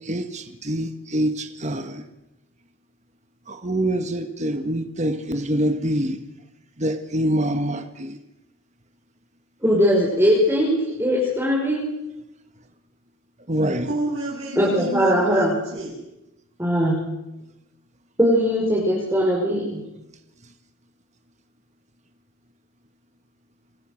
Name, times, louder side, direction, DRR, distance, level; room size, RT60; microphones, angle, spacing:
voice 1, 0.1-2.0 3.5-6.2 6.8-8.2 13.5-13.9, right 1 dB, 30° right, 1.7 m, -25 dB
voice 2, 9.6-11.9 14.6-15.6 16.6-17.0 18.2-19.8, equal, 10° right, 5.2 m, -20 dB
voice 3, 13.6-15.9, right 2 dB, 60° right, 6.5 m, -30 dB
28.0 x 22.0 x 6.6 m
head